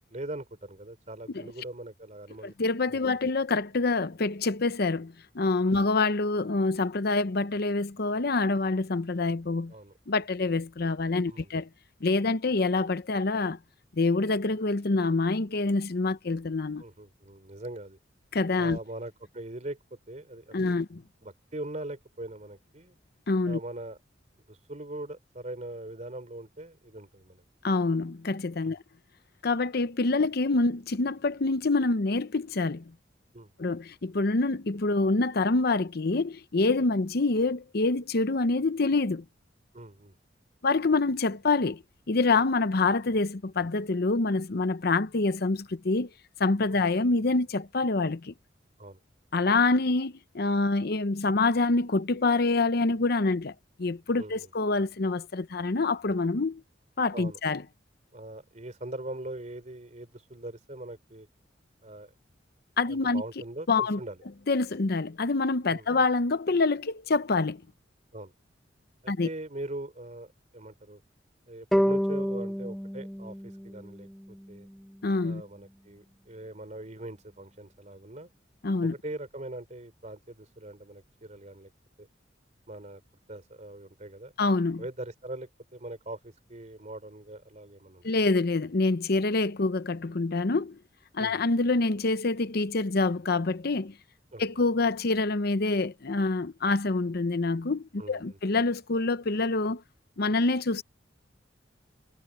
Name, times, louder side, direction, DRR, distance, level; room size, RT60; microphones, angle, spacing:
voice 1, 0.1-2.5 2.9-3.0 5.7-5.8 9.7-9.9 11.3-11.5 16.8-18.0 18.6-20.7 21.2-22.9 23.5-24.0 24.5-27.4 28.6-28.8 33.3-33.5 39.7-40.1 46.7-46.8 48.8-49.0 54.2-54.5 57.1-57.4 58.1-61.3 61.8-62.1 62.9-64.2 65.7-65.9 68.1-68.3 69.0-71.0 71.5-74.7 75.2-78.3 78.8-81.7 82.0-82.1 82.7-83.0 83.3-84.3 84.8-88.2 91.2-91.4 94.3-94.4 98.0-98.4, right 1 dB, 40° right, 3.6 m, -41 dB
voice 2, 2.4-9.7 10.1-11.7 12.0-13.6 14.0-16.8 18.3-18.8 20.5-21.0 23.3-23.6 27.6-28.8 29.4-32.9 33.6-39.2 40.6-46.1 46.4-48.3 49.3-53.5 53.8-56.6 57.0-57.6 62.8-63.2 63.7-64.0 64.5-67.6 69.1-69.3 75.0-75.4 78.6-78.9 84.4-84.8 88.0-90.8 91.1-93.9 94.4-99.8 100.2-100.8, left 3 dB, 60° left, 0.8 m, -26 dB
sound 1, 71.7-75.0, equal, ahead, 0.4 m, -30 dB
head